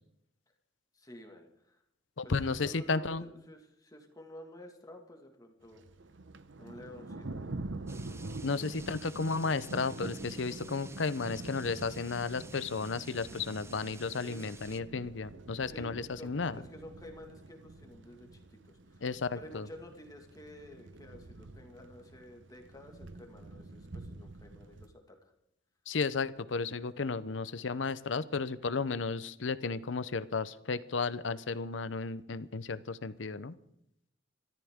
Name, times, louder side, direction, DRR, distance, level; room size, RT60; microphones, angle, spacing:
voice 1, 0.9-1.8 2.2-5.8 6.6-7.4 14.2-14.5 15.7-19.0 19.3-25.3, left 1 dB, 20° left, 3 dB, 1.9 m, -51 dB
voice 2, 2.2-3.3 8.4-16.6 19.0-19.7 25.9-33.6, left 4 dB, 80° left, 15 dB, 0.7 m, -33 dB
Thunder, 5.7-24.9, right 2 dB, 80° right, 0.9 m, -46 dB
sound 1, 7.9-14.8, right 3 dB, 15° right, 0.6 m, -52 dB
28.0 x 13.5 x 3.7 m, 0.76 s
head